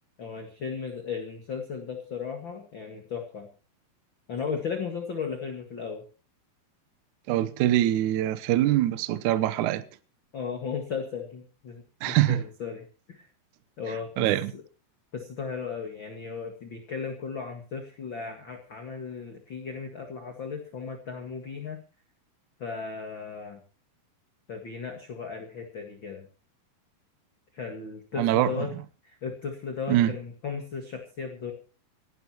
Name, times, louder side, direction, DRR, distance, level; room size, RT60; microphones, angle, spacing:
voice 1, 0.2-3.5 4.3-6.0 10.3-13.3 13.8-14.6 15.1-21.8 22.6-23.6 24.5-26.3 27.5-28.7 29.0-31.5, left 5 dB, 45° left, 1.7 m, -36 dB
voice 2, 7.3-9.8 12.0-12.4 14.2-14.5 28.2-28.7 29.9-30.1, right 13 dB, 85° right, 1.7 m, -24 dB
28.0 x 12.0 x 3.0 m
omnidirectional pair, 4.7 m